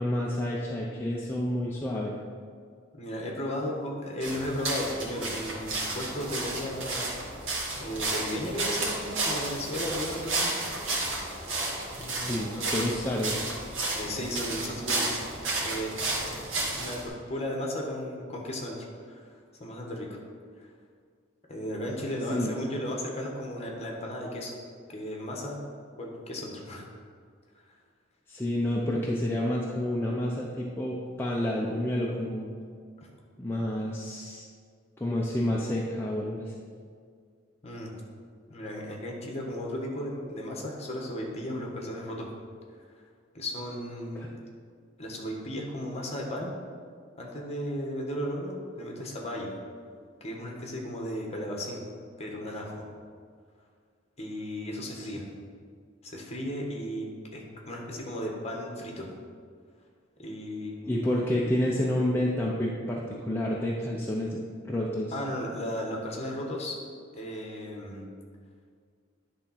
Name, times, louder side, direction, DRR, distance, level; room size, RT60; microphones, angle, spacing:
voice 1, 0.0-2.1 12.1-13.4 22.3-22.6 28.3-32.5 33.4-34.4 35.0-36.5 44.2-44.3 54.9-55.1 60.9-65.1, left 1 dB, 10° left, -4 dB, 0.6 m, -29 dB
voice 2, 2.9-7.1 7.8-10.6 12.0-12.8 13.9-15.1 15.6-16.0 16.2-18.8 19.1-19.3 19.6-20.2 20.6-20.7 21.5-24.5 24.9-25.6 26.0-26.8 27.5-27.6 37.6-38.0 38.5-42.3 43.3-44.3 45.0-46.5 47.2-49.5 50.2-51.8 52.2-52.8 54.2-55.2 56.0-59.1 60.2-60.9 65.1-66.8 67.1-68.0, equal, 35° left, -1 dB, 1.3 m, -35 dB
sound 1, 4.2-17.1, right 2 dB, 80° right, 1.5 m, -32 dB
10.0 x 3.6 x 5.7 m, 2.1 s
head